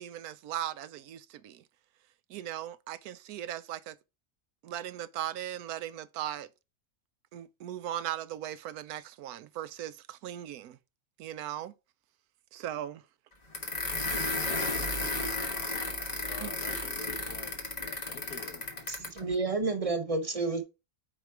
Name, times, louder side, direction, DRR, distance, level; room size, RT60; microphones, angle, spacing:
voice 1, 0.0-1.6 2.3-4.0 4.6-6.5 7.3-10.8 11.2-11.7 12.5-13.0 16.4-16.5, right 12 dB, 80° right, 1.1 m, -38 dB
sound 1, 13.5-19.2, left 2 dB, 30° left, 1.3 m, -33 dB
voice 2, 16.3-18.7, left 7 dB, 80° left, 1.4 m, -47 dB
voice 3, 18.9-20.6, right 3 dB, 25° right, 0.9 m, -30 dB
8.9 x 3.2 x 4.6 m
omnidirectional pair, 1.6 m